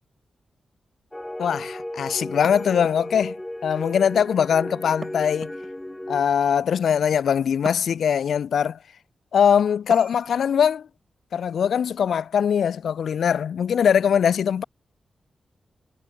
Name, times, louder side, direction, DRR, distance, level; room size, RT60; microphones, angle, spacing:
sound 1, 1.1-6.2, left 1 dB, 10° left, 0.8 m, -34 dB
voice 1, 1.4-3.3 3.6-5.5 6.1-8.8 9.3-10.9 11.3-14.6, left 8 dB, 80° left, 1.1 m, -21 dB
sound 2, 2.4-3.4 5.0-6.0 7.6-8.3 9.9-10.5, right 3 dB, 25° right, 1.6 m, -41 dB
wide cardioid pair, 115°, 0 cm